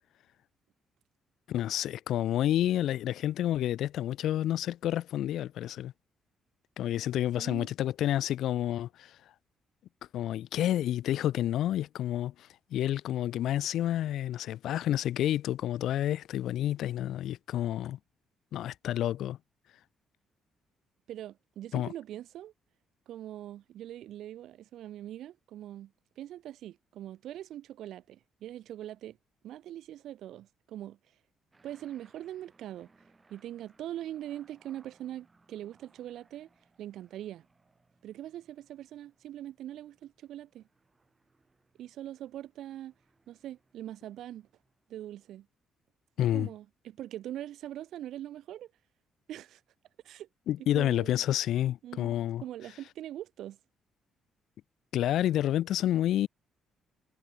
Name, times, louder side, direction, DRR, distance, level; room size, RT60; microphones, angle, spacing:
voice 1, 1.5-5.9 6.8-9.2 10.1-18.0 18.5-19.4 21.7-21.9 46.2-46.5 50.5-52.4 54.9-56.3, left 12 dB, 80° left, 0.7 m, -29 dB
voice 2, 7.4-7.7 21.1-22.5 23.1-29.2 29.4-31.0 31.6-32.9 33.3-36.5 36.8-37.5 38.0-40.7 41.8-42.9 43.3-44.5 44.9-45.5 46.2-48.7 49.3-49.6 50.0-50.3 50.7-51.1 51.8-53.6, right 12 dB, 80° right, 0.5 m, -42 dB
sound 1, 31.5-45.2, right 3 dB, 25° right, 6.7 m, -67 dB
cardioid pair, 90°, 0 cm